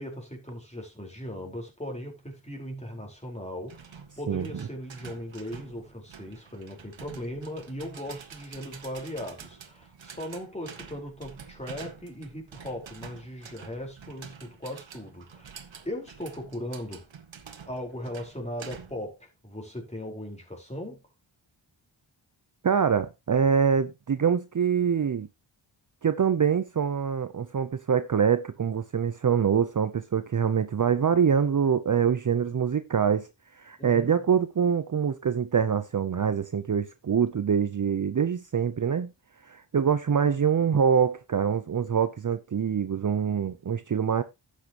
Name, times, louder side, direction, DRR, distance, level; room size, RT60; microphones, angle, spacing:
voice 1, 0.0-17.0 17.7-21.0 33.8-34.2, equal, 15° left, 4.5 m, -38 dB
sound 1, 3.7-19.1, right 6 dB, 65° right, 1.7 m, -48 dB
voice 2, 4.3-4.6 22.6-25.3 26.0-33.3 33.5-39.1 39.5-44.2, right 7 dB, 40° right, 0.7 m, -25 dB
11.5 x 8.5 x 3.0 m
cardioid pair, 70°, 48 cm